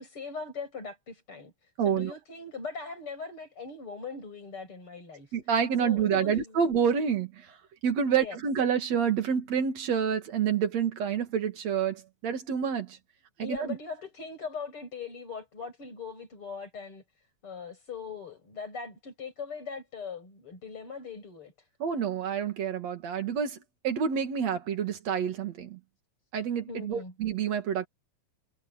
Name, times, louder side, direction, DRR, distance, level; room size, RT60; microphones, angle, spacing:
voice 1, 0.0-5.4 5.8-6.6 8.1-8.4 13.4-17.0 17.4-21.7 26.7-27.1, left 4 dB, 45° left, 8.2 m, -40 dB
voice 2, 1.8-2.1 5.3-7.6 7.8-13.0 13.4-13.8 21.8-23.6 23.8-25.8 26.3-27.9, right 7 dB, 60° right, 3.3 m, -28 dB
omnidirectional pair, 3.5 m